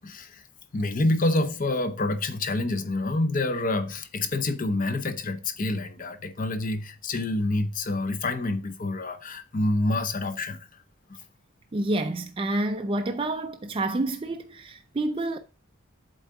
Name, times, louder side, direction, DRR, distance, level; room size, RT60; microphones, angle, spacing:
voice 1, 0.0-0.4 0.7-10.7 11.1-11.2, left 2 dB, 40° left, 0.6 m, -27 dB
voice 2, 11.7-15.4, right 2 dB, 25° right, 0.4 m, -28 dB
8.0 x 3.8 x 3.5 m
head